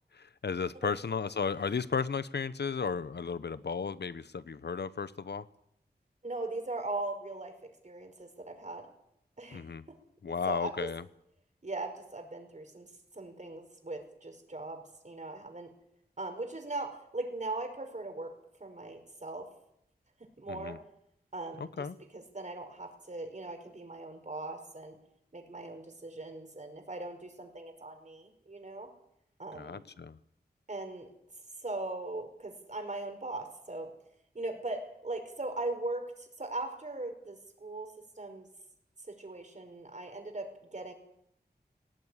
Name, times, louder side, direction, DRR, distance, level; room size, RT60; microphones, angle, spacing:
voice 1, 0.1-5.4 9.5-9.8 10.2-11.0 20.5-20.8 21.6-22.0 29.5-30.2, left 5 dB, 80° left, 15 dB, 1.0 m, -34 dB
voice 2, 6.2-7.6 7.8-8.9 9.4-10.0 10.5-10.7 11.6-15.7 16.2-18.3 18.6-19.5 20.4-20.8 21.3-21.9 22.1-25.0 25.3-28.9 29.4-29.8 30.7-31.1 31.6-33.9 34.4-37.9 38.2-38.5 39.1-40.9, right 2 dB, 45° right, 5 dB, 5.0 m, -39 dB
19.0 x 17.5 x 9.9 m, 0.76 s
wide cardioid pair, 75°, 17 cm